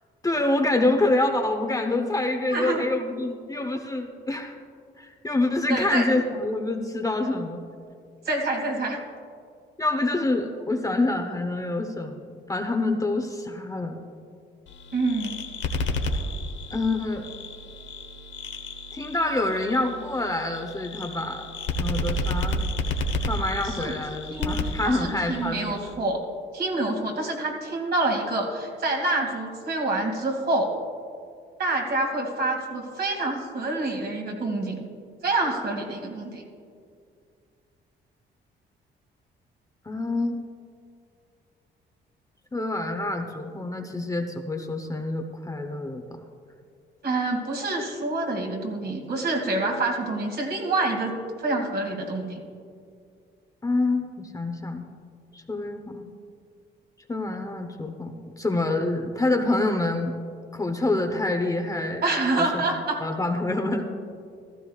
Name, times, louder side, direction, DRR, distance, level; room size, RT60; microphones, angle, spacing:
voice 1, 0.2-4.6 5.0-7.6 9.8-14.0 16.7-17.2 18.9-21.5 21.8-22.6 23.3-25.8 39.9-40.5 42.5-46.0 53.6-54.9 55.3-56.1 57.1-60.1 60.5-62.0 62.3-62.6 63.0-63.8, left 2 dB, 15° left, 4 dB, 0.9 m, -26 dB
voice 2, 2.5-2.8 5.7-6.1 8.2-9.0 14.9-15.4 23.6-23.9 24.3-24.6 24.8-26.2 26.5-30.8 31.6-34.8 35.2-36.4 47.0-52.4 62.0-63.0, right 2 dB, 55° right, 1 dB, 2.5 m, -27 dB
sound 1, 14.7-25.9, left 1 dB, 70° left, 1.2 m, -31 dB
15.5 x 13.5 x 2.4 m, 2.3 s
cardioid pair, 90°, 20 cm